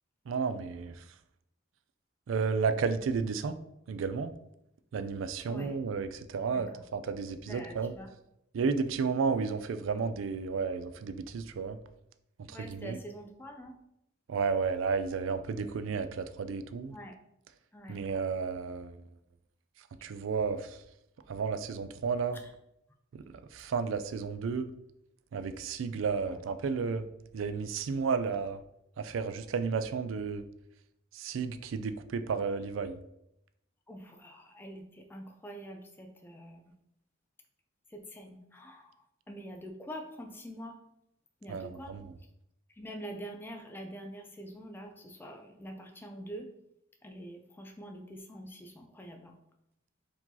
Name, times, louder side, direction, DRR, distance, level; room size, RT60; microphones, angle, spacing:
voice 1, 0.3-0.9 2.3-3.6 3.9-4.3 4.9-8.0 8.5-11.8 12.5-13.0 14.3-17.0 17.9-19.0 20.0-20.8 21.3-22.4 23.1-23.2 23.5-24.7 25.3-27.1 27.3-28.6 29.0-30.4 31.1-33.0 41.5-42.1, right 5 dB, 75° right, 11 dB, 0.4 m, -32 dB
voice 2, 7.5-8.1 12.5-13.7 16.9-17.1 17.7-18.0 33.9-34.8 35.1-36.6 38.2-38.8 39.3-40.7 41.4-41.9 42.8-46.5 47.0-49.3, equal, 10° left, 3 dB, 0.3 m, -45 dB
4.7 x 2.7 x 3.8 m, 0.81 s
head